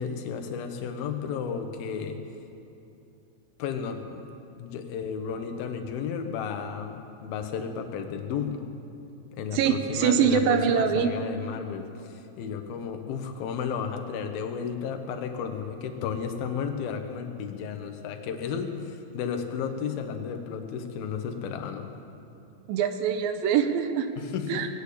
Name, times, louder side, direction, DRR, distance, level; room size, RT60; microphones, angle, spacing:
voice 1, 0.0-2.2 3.6-8.6 9.3-21.9 24.2-24.7, left 7 dB, 80° left, 6 dB, 2.9 m, -33 dB
voice 2, 9.5-11.2 22.7-24.1 24.5-24.7, right 8 dB, 80° right, 8 dB, 2.4 m, -24 dB
20.5 x 8.3 x 8.4 m, 2.8 s
omnidirectional pair, 4.3 m